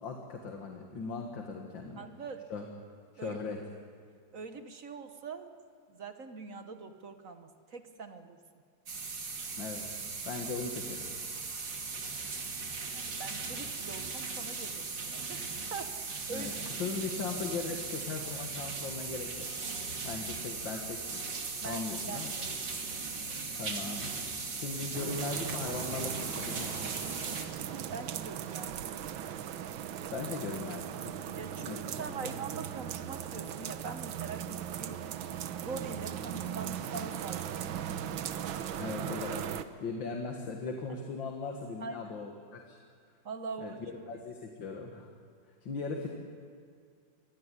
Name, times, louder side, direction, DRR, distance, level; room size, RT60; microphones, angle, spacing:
voice 1, 0.0-2.1 2.5-2.6 3.1-3.6 9.6-9.8 10.3-11.1 16.3-16.5 16.8-19.5 20.1-21.2 21.6-22.3 23.6-24.1 24.5-26.9 30.1-31.1 31.7-32.0 32.2-32.3 38.8-39.5 39.8-42.8 43.6-45.1 45.6-46.1, left 4 dB, 75° left, 2 dB, 2.4 m, -38 dB
voice 2, 2.0-2.4 3.2-3.4 4.3-5.5 5.9-8.4 12.9-16.7 21.6-22.6 22.9-23.3 27.9-28.9 31.3-35.0 35.6-37.9 41.8-42.1 43.2-44.2, right 4 dB, 50° right, 8 dB, 1.4 m, -43 dB
sound 1, 8.9-27.4, right 4 dB, 65° right, 3.0 m, -38 dB
sound 2, 24.9-39.6, right 9 dB, 90° right, 1.7 m, -38 dB
24.0 x 18.0 x 9.9 m, 2.1 s
omnidirectional pair, 2.1 m